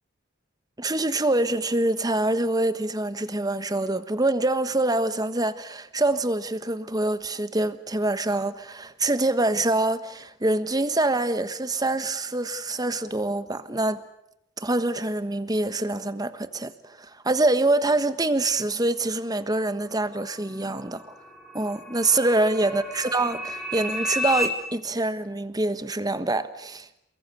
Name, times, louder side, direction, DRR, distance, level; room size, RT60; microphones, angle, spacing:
voice 1, 0.8-14.0 14.6-21.1 21.5-26.9, right 2 dB, 20° right, 1.3 m, -25 dB
sound 1, 20.2-24.5, left 1 dB, ahead, 4.1 m, -33 dB
28.5 x 22.5 x 8.3 m
head